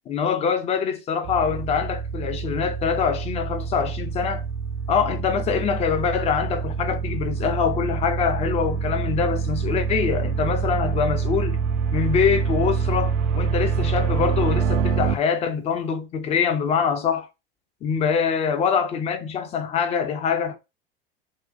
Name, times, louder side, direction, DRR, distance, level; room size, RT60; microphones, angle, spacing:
voice 1, 0.1-4.4 4.9-11.6 11.9-17.3 17.8-20.5, left 6 dB, 20° left, 0.4 m, -24 dB
sound 1, 1.3-15.1, right 6 dB, 50° right, 0.4 m, -26 dB
2.6 x 2.1 x 2.4 m
figure-of-eight pair, 75°, 30 cm